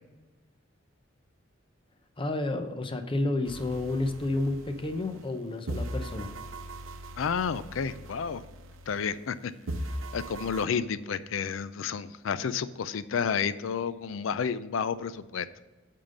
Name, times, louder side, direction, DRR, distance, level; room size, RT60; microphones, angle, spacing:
voice 1, 2.2-6.3, left 2 dB, 25° left, 7 dB, 0.7 m, -30 dB
sound 1, 3.4-5.3 5.7-9.4 9.7-10.6, right 1 dB, 90° right, 0.7 m, -39 dB
voice 2, 7.2-8.4 8.9-9.5 10.1-15.5, left 6 dB, 80° left, 15 dB, 0.4 m, -31 dB
8.8 x 3.8 x 6.5 m, 1.2 s
head